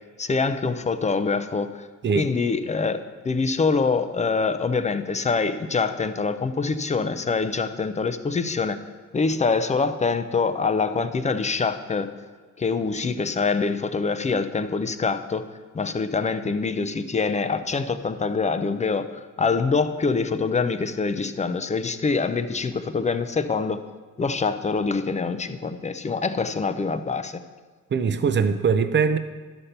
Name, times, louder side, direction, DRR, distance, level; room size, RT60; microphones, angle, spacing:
voice 1, 0.2-1.9 2.1-8.8 9.1-12.1 12.6-15.4 15.7-23.8 24.2-27.4, left 4 dB, 25° left, 10 dB, 0.6 m, -25 dB
voice 2, 27.9-29.2, right 6 dB, 40° right, 10 dB, 0.7 m, -21 dB
11.0 x 4.3 x 6.7 m, 1.4 s
cardioid pair, 90°, 30 cm